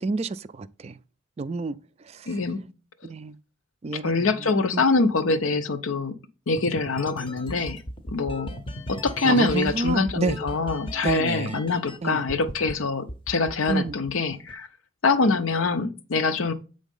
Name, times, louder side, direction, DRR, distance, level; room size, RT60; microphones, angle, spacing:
voice 1, 0.0-0.9 1.4-1.8 2.1-2.3 3.0-3.4 3.8-4.1 4.4-4.9 9.2-10.4 11.0-11.6 12.0-12.2 13.7-13.9, right 3 dB, 30° right, 0.3 m, -29 dB
voice 2, 2.3-2.6 3.9-6.1 6.5-7.8 8.1-8.5 8.9-14.7 15.0-16.5, left 3 dB, 85° left, 0.7 m, -24 dB
sound 1, 6.6-12.0 12.3-12.7 13.1-14.5, equal, 25° left, 0.6 m, -37 dB
8.3 x 3.9 x 5.4 m
head